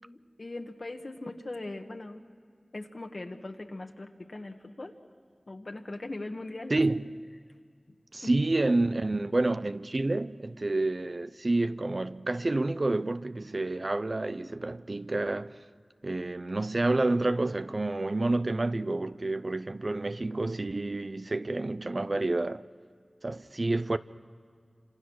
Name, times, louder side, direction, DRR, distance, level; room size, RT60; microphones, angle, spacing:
voice 1, 0.0-2.3 2.7-4.9 5.5-6.8, left 2 dB, 55° left, 1.5 m, -40 dB
voice 2, 6.7-7.1 8.1-15.6 16.0-22.6 23.2-24.0, right 2 dB, 50° right, 0.6 m, -29 dB
28.5 x 26.5 x 6.4 m
wide cardioid pair, 60°, 0 cm